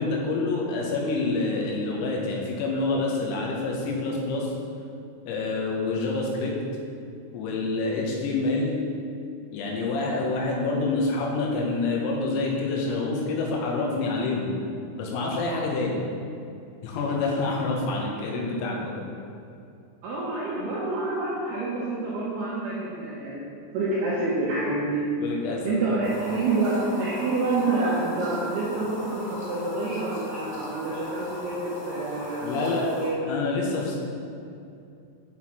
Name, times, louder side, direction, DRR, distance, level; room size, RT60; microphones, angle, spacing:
voice 1, 0.0-4.5 5.3-6.6 7.3-8.7 9.5-14.6 15.0-16.0 16.8-19.0 25.2-26.0 32.4-32.9 33.3-34.0, left 3 dB, 90° left, -2 dB, 3.9 m, -27 dB
voice 2, 20.0-23.5 23.7-25.0 25.6-33.2, right 2 dB, 85° right, -6 dB, 2.3 m, -28 dB
sound 1, 26.0-33.1, left 1 dB, 70° left, 3.3 m, -38 dB
8.0 x 6.3 x 4.3 m, 2.6 s
omnidirectional pair, 5.9 m